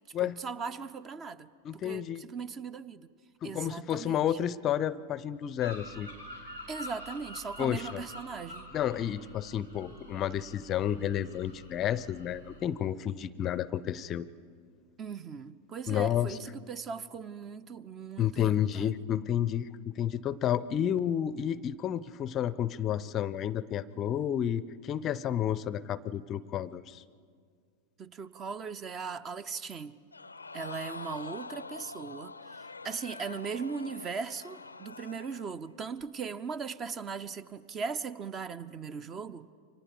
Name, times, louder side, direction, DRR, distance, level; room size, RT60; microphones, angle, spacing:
voice 1, 0.2-3.1 3.4-4.4 6.7-8.8 15.0-18.9 28.0-29.9 30.5-39.5, right 5 dB, 25° right, 0.6 m, -39 dB
voice 2, 1.6-2.2 3.4-6.1 7.6-8.0 8.7-14.3 15.9-16.3 18.2-19.7 20.0-27.0, left 10 dB, 30° left, 0.5 m, -31 dB
sound 1, 5.6-12.7, left 1 dB, 85° right, 4.1 m, -47 dB
Crowd, 30.1-35.6 36.0-36.1, left 3 dB, 80° left, 0.5 m, -45 dB
29.0 x 24.5 x 5.0 m
figure-of-eight pair, 90°, 0 cm